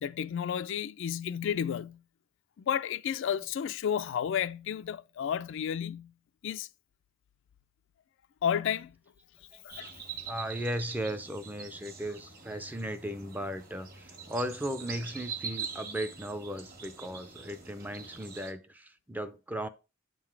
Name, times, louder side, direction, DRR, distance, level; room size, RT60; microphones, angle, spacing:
voice 1, 0.0-2.0 2.6-6.1 6.4-6.7 8.4-8.9 9.6-9.9, left 8 dB, 60° left, 0.3 m, -32 dB
sound 1, 9.7-18.5, right 6 dB, 45° right, 1.3 m, -43 dB
voice 2, 10.3-19.7, equal, 10° right, 0.4 m, -36 dB
7.9 x 3.9 x 4.6 m
head